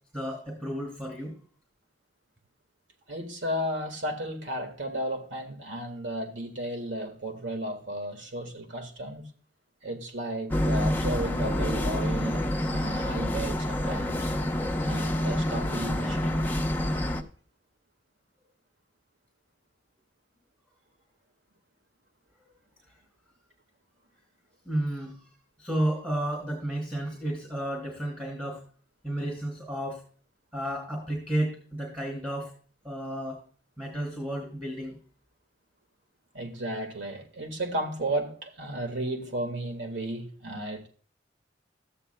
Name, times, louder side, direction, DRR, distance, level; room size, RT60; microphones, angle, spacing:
voice 1, 0.1-1.4 24.7-25.2 25.6-28.6 29.0-30.0 30.5-32.5 32.8-33.4 33.8-34.9, right 1 dB, 10° right, 2.4 m, -32 dB
voice 2, 3.1-9.3 9.8-14.3 14.8-16.4 36.3-40.9, right 1 dB, 85° right, 1.7 m, -34 dB
sound 1, 10.5-17.2, left 1 dB, 10° left, 0.8 m, -27 dB
13.5 x 9.1 x 2.2 m
head